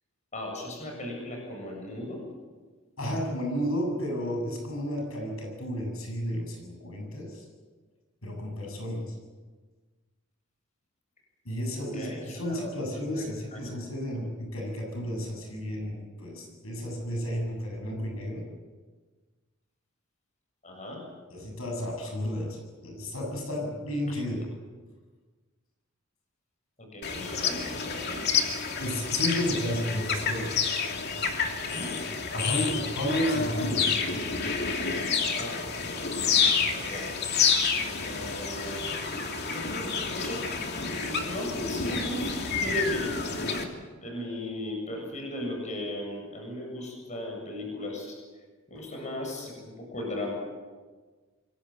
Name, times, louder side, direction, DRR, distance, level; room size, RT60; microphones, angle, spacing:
voice 1, 0.3-2.2 11.8-13.7 20.6-21.0 26.8-28.2 31.7-32.0 35.4-37.1 38.0-39.2 39.5-40.4 41.0-43.1 43.4-43.7 44.0-48.2 48.7-50.3, left 1 dB, 35° left, 1 dB, 7.6 m, -37 dB
voice 2, 3.0-7.4 8.2-9.1 11.4-18.4 21.3-24.5 28.8-30.6 32.3-34.0, equal, 80° left, 1 dB, 8.0 m, -32 dB
sound 1, 27.0-43.6, left 5 dB, 50° left, 2.9 m, -29 dB
27.0 x 23.0 x 7.9 m, 1.4 s
head